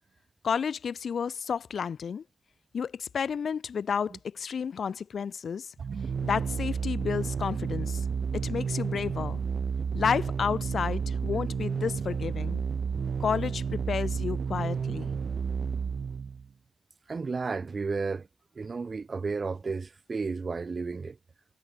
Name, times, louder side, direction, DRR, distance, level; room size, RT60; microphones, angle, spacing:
voice 1, 0.4-2.2 2.7-5.7 6.2-8.1 8.3-9.4 9.9-12.6 13.2-15.1, left 6 dB, 85° left, 2.2 m, -31 dB
sound 1, 5.8-16.5, right 6 dB, 75° right, 3.0 m, -31 dB
voice 2, 17.1-18.3 18.6-21.2, right 4 dB, 55° right, 6.0 m, -32 dB
cardioid pair, 55°, 0 cm